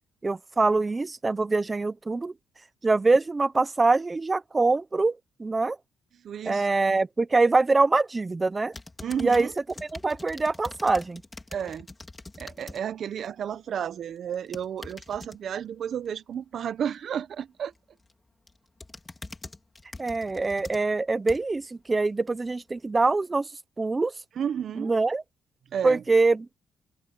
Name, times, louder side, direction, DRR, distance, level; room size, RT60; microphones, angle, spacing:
voice 1, 0.2-2.3 2.8-5.8 6.5-8.7 9.2-9.5 9.8-11.2 20.0-23.5 23.8-24.1 24.8-25.2 25.8-26.5, right 3 dB, 25° right, 1.0 m, -24 dB
voice 2, 6.2-6.7 9.0-9.5 11.5-11.9 12.4-17.7 24.4-24.9 25.7-26.0, right 8 dB, 60° right, 1.0 m, -32 dB
sound 1, 8.7-12.8 13.2-13.5 14.3-15.4 17.7-18.1 18.5-21.6 22.2-22.3, left 2 dB, 20° left, 4.2 m, -44 dB
cardioid pair, 90°, 0 cm